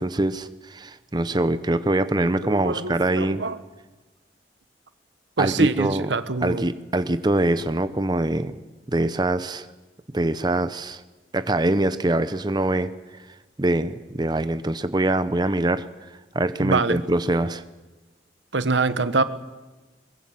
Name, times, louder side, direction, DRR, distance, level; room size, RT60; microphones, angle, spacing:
voice 1, 0.0-3.4 5.4-6.1 6.4-8.5 8.9-9.7 10.1-11.0 11.3-12.9 13.6-15.9 16.3-17.6, right 1 dB, 25° right, 12 dB, 0.7 m, -23 dB
voice 2, 2.4-3.6 5.4-6.7 16.6-17.0 18.5-19.2, right 3 dB, 85° right, 13 dB, 1.2 m, -24 dB
22.5 x 20.5 x 7.7 m, 1.2 s
head